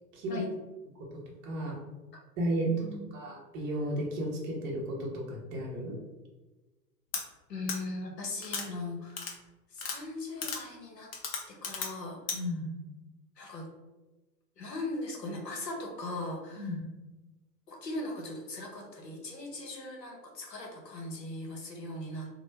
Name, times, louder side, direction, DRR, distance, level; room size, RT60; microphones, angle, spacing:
voice 1, 1.4-1.8 2.4-2.7 3.1-6.0 12.3-12.7 16.6-16.8, equal, 25° right, -2 dB, 0.7 m, -34 dB
voice 2, 2.7-3.0 7.5-9.3 9.7-11.1 11.5-12.5 13.4-13.7 14.6-16.8 17.7-22.3, left 2 dB, 80° left, 1 dB, 0.9 m, -39 dB
sound 1, 7.1-7.2 7.7-7.8 8.4-8.7 9.2-9.3 9.8-10.0 10.4-10.6 11.1-11.9 12.3-12.4, left 5 dB, 40° left, 0.5 m, -34 dB
2.9 x 2.1 x 3.2 m, 1.1 s
figure-of-eight pair, 100°, 49 cm